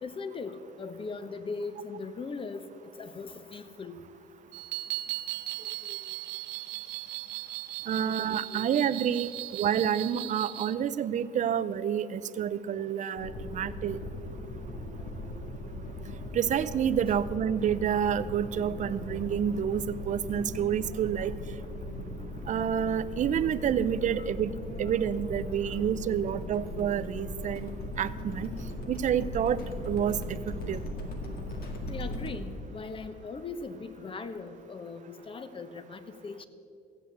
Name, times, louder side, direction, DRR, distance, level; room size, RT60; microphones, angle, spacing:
voice 1, 0.0-2.7 3.0-4.0 5.6-6.0 8.0-8.8 24.2-24.3 31.9-36.4, left 4 dB, 30° left, 11 dB, 1.0 m, -40 dB
sound 1, 4.5-10.7, right 16 dB, 90° right, 0.6 m, -37 dB
voice 2, 7.9-14.0 16.3-21.3 22.5-24.5 24.8-27.7 28.0-28.5 28.9-29.6 29.9-30.8, right 9 dB, 45° right, 14 dB, 0.6 m, -29 dB
sound 2, 13.2-32.4, left 1 dB, 65° left, 2.0 m, -38 dB
15.0 x 8.2 x 7.9 m, 2.6 s
cardioid pair, 110°, 17 cm